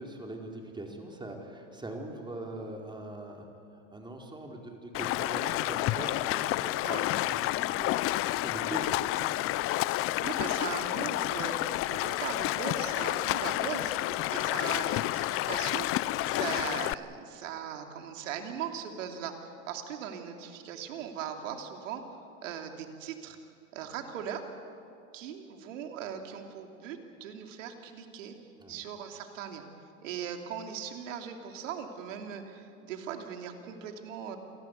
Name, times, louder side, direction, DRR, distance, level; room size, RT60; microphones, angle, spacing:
voice 1, 0.0-3.5 3.9-9.5 14.1-14.3 28.6-28.8, right 1 dB, 10° right, 1 dB, 4.3 m, -42 dB
Stream, 4.9-16.9, left 17 dB, 35° left, 0.6 m, -30 dB
voice 2, 9.9-22.0 22.4-23.4 23.7-24.4 25.1-28.3 28.7-29.6 30.0-34.4, right 8 dB, 75° right, 4 dB, 3.1 m, -39 dB
28.0 x 18.5 x 8.3 m, 2.6 s
hypercardioid pair, 110°, 38 cm